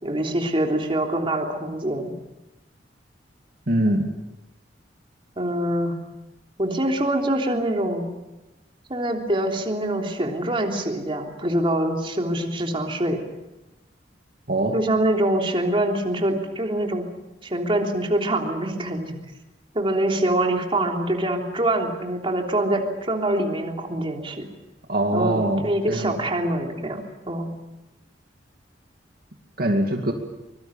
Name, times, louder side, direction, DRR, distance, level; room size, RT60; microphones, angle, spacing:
voice 1, 0.0-2.1 5.4-6.0 6.6-8.1 8.9-13.2 14.7-17.1 17.4-19.2 19.7-24.4 25.1-27.5, right 1 dB, 30° right, 1 dB, 3.3 m, -24 dB
voice 2, 3.7-4.0 14.5-14.8 24.9-26.2 29.6-30.1, right 1 dB, 55° right, 2 dB, 2.4 m, -23 dB
24.5 x 22.5 x 7.2 m, 1.0 s
head